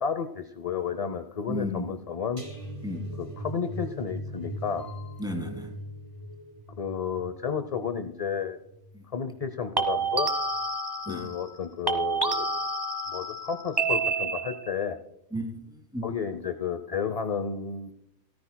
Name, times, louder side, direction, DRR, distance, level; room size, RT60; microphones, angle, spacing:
voice 1, 0.0-2.4 3.2-4.9 6.8-8.6 9.1-10.3 11.1-12.5 13.1-15.0 16.0-17.9, left 6 dB, 40° left, 9 dB, 0.6 m, -32 dB
voice 2, 1.5-1.9 2.8-3.0 5.2-5.7 8.9-9.0 11.1-11.3 15.3-16.1, left 1 dB, 5° right, 3 dB, 2.6 m, -34 dB
sound 1, 2.4-9.4 9.8-10.1 10.4-10.5, equal, 35° right, 2.5 m, -40 dB
sound 2, 4.8-5.1 9.8-11.6 11.9-14.8, right 3 dB, 20° right, 1.3 m, -29 dB
18.5 x 14.0 x 2.2 m, 0.82 s
omnidirectional pair, 1.1 m